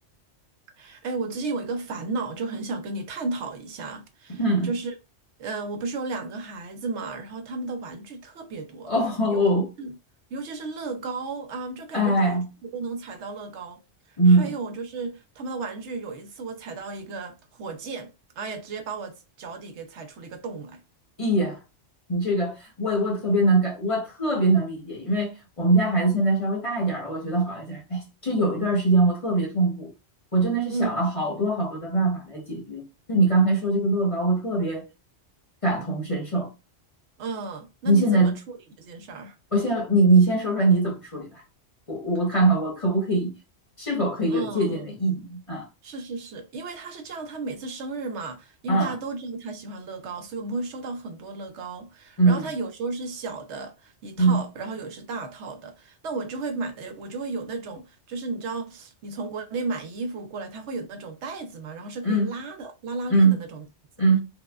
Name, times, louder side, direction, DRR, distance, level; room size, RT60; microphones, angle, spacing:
voice 1, 0.8-4.9 5.4-8.9 9.3-9.4 9.8-9.9 10.3-12.4 12.7-13.8 14.1-20.8 30.7-31.1 37.2-38.4 38.8-39.4 44.3-44.8 45.8-63.7, right 3 dB, 70° right, 0.9 m, -34 dB
voice 2, 4.4-4.7 8.9-9.7 11.9-12.5 14.2-14.5 21.2-21.6 22.1-29.9 30.3-34.9 35.6-36.5 37.8-38.4 39.5-41.4 41.9-43.3 43.8-45.7 48.7-49.0 52.2-52.5 54.2-54.4 62.0-62.3 63.1-63.4 64.0-64.2, right 2 dB, 30° left, 0.8 m, -22 dB
4.6 x 2.2 x 2.3 m
omnidirectional pair, 1.2 m